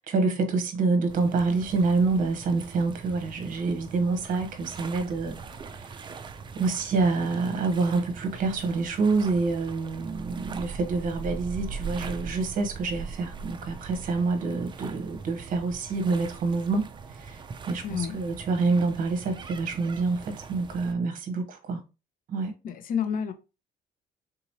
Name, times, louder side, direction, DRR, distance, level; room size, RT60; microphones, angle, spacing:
voice 1, 0.0-6.1 6.5-21.8 22.3-22.5, right 4 dB, 50° right, 0.9 m, -27 dB
sound 1, 1.1-20.9, right 5 dB, 30° right, 0.4 m, -41 dB
voice 2, 17.8-18.2 22.6-23.3, left 7 dB, 55° left, 0.6 m, -29 dB
3.8 x 3.0 x 2.7 m
cardioid pair, 110°, 17 cm